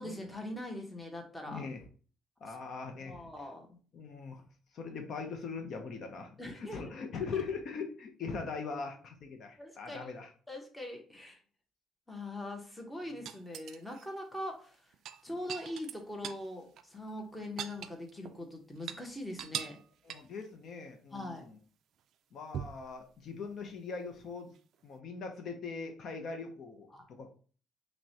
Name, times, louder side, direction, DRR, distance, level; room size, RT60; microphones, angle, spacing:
voice 1, 0.0-1.7 2.5-2.6 3.0-3.8 6.4-6.9 9.6-10.2 10.5-11.4 12.1-14.8 15.2-19.8 21.1-21.5 26.9-27.0, left 1 dB, 5° left, 1 dB, 0.8 m, -42 dB
voice 2, 1.4-1.8 2.4-3.3 3.9-4.4 4.7-10.3 20.0-21.6 22.3-24.5 24.8-26.9 27.2-27.3, left 5 dB, 50° left, 4 dB, 0.6 m, -41 dB
sound 1, 13.3-14.1 14.9-16.5 16.8-16.9 17.2-18.4 18.7-19.0 19.4-19.8 20.1-20.4 22.5-22.9 24.6-24.7, right 9 dB, 60° right, 0.3 m, -41 dB
5.8 x 2.1 x 2.7 m, 0.41 s
cardioid pair, 135°, 0 cm